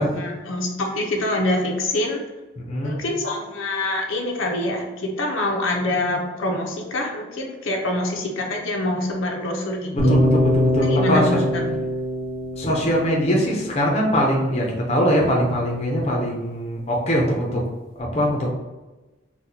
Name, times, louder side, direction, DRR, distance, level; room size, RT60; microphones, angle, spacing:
voice 1, 0.0-2.2 2.8-10.2 10.8-11.8, left 1 dB, 85° left, 1 dB, 0.6 m, -25 dB
voice 2, 2.6-3.0 9.9-11.4 12.6-17.6 18.0-18.5, equal, 30° left, -2 dB, 0.5 m, -22 dB
sound 1, 10.0-14.1, left 1 dB, 30° right, 0.9 m, -22 dB
4.2 x 2.2 x 2.7 m, 1.2 s
head